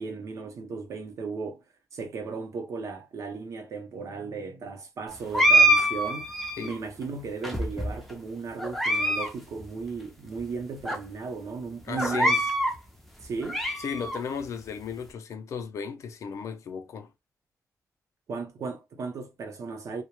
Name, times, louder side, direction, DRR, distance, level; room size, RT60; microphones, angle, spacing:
voice 1, 0.0-1.6 1.9-6.3 6.6-12.4 13.2-13.6 18.3-20.0, right 4 dB, 60° right, 0.7 m, -36 dB
sound 1, 5.3-6.8 7.4-8.1 8.6-9.3 9.6-9.7 10.4-10.5 10.9-11.0 12.0-12.8 13.2-14.2, right 1 dB, ahead, 0.4 m, -24 dB
voice 2, 11.8-12.4 13.8-17.1, left 6 dB, 60° left, 0.4 m, -35 dB
2.2 x 2.1 x 2.9 m
wide cardioid pair, 155°, 6 cm